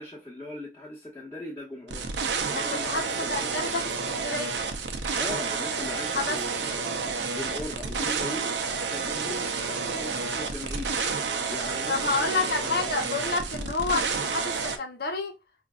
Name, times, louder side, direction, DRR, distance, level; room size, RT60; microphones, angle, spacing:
voice 1, 0.0-3.6 5.2-7.0 7.3-11.0 11.5-12.7, left 1 dB, 15° left, 1.0 m, -39 dB
sound 1, 1.9-14.8, right 5 dB, 85° right, 0.6 m, -30 dB
voice 2, 2.5-3.0 3.3-4.6 6.1-6.4 11.9-15.3, left 4 dB, 60° left, 0.9 m, -29 dB
5.0 x 2.5 x 2.4 m
head